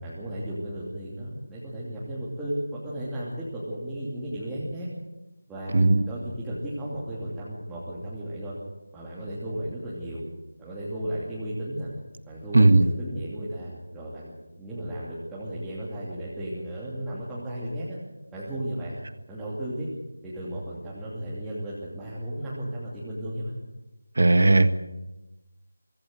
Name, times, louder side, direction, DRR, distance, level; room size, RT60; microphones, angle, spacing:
voice 1, 0.0-4.9 5.5-8.5 8.9-10.2 10.6-11.9 12.3-18.0 18.3-19.0 19.3-19.9 20.2-23.5, right 1 dB, 5° right, -10 dB, 2.8 m, -34 dB
voice 2, 24.2-24.7, right 2 dB, 55° right, 11 dB, 1.7 m, -17 dB
24.5 x 16.5 x 7.8 m, 1.0 s
figure-of-eight pair, 170°, 0 cm